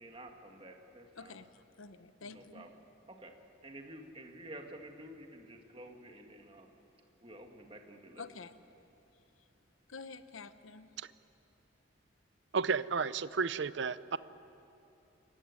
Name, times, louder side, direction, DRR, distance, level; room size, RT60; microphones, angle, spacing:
voice 1, 0.0-1.4 2.2-2.7 3.1-3.3 3.6-6.7 7.2-8.3, right 1 dB, 25° right, 3 dB, 1.9 m, -50 dB
voice 2, 1.2-2.7 8.2-8.5 9.9-10.9, left 4 dB, 80° left, 12 dB, 1.0 m, -49 dB
voice 3, 12.5-14.2, right 5 dB, 60° right, 16 dB, 0.6 m, -32 dB
27.0 x 15.5 x 9.7 m, 2.9 s
head